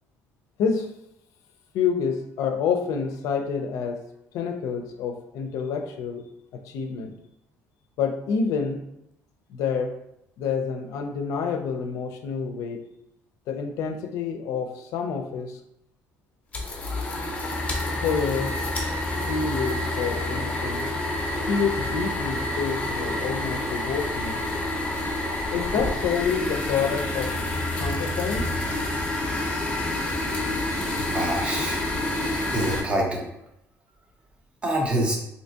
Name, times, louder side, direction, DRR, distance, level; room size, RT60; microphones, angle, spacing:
voice 1, 0.6-0.9 1.7-4.0 4.3-6.2 6.7-7.1 8.0-8.8 9.5-9.9 10.4-12.8 13.5-15.6 18.0-18.6 19.3-20.9 21.5-24.4 25.5-27.3 27.8-28.5, left 6 dB, 80° left, 5 dB, 0.4 m, -28 dB
sound 1, 16.5-32.8, left 1 dB, 25° left, 0.5 m, -28 dB
voice 2, 31.1-31.8 32.5-33.3 34.6-35.2, right 1 dB, 20° right, -1 dB, 0.6 m, -25 dB
3.3 x 2.7 x 2.7 m, 0.80 s
cardioid pair, 170°, 5 cm